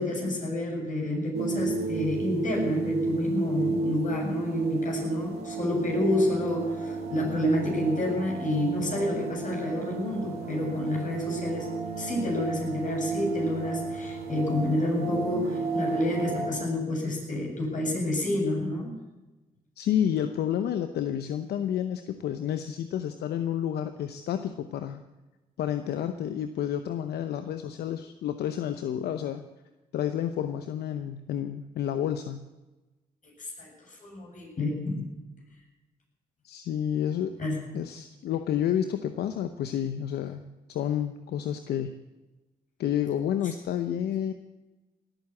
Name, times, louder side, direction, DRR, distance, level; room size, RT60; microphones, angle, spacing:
voice 1, 0.0-11.7 12.0-18.9 33.4-35.1 37.4-37.6, left 1 dB, 50° left, -1 dB, 7.9 m, -29 dB
sound 1, 1.3-16.5, right 4 dB, 85° right, 2.2 m, -32 dB
voice 2, 19.8-25.0 25.6-29.4 29.9-32.4 36.4-37.3 37.7-40.4 40.7-42.0 42.8-44.3, left 10 dB, 80° left, 9 dB, 0.8 m, -30 dB
18.5 x 9.1 x 8.4 m, 1.1 s
supercardioid pair, 50°, 16 cm